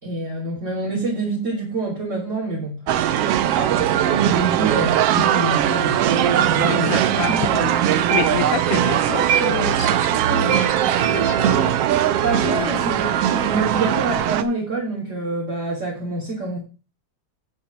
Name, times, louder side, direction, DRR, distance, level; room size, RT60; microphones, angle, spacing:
voice 1, 0.0-2.8 3.4-7.6 12.2-16.6, right 2 dB, 25° right, 2.7 m, -26 dB
sound 1, 2.9-14.4, right 10 dB, 75° right, 1.4 m, -20 dB
voice 2, 6.5-11.7 12.3-12.9, left 13 dB, 80° left, 1.5 m, -30 dB
7.8 x 7.2 x 6.0 m
omnidirectional pair, 3.4 m